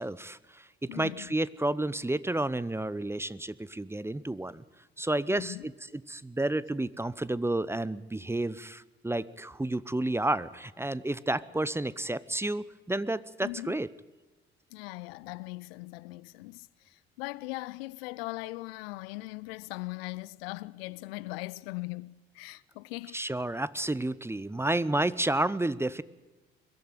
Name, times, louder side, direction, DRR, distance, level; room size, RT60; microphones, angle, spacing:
voice 1, 0.0-4.6 5.0-13.9 23.1-26.0, right 1 dB, 10° right, 0.7 m, -31 dB
voice 2, 0.9-1.3 5.3-5.7 13.4-13.8 14.7-23.2, left 22 dB, 70° left, 0.6 m, -40 dB
22.0 x 13.5 x 9.3 m
figure-of-eight pair, 50°, 31 cm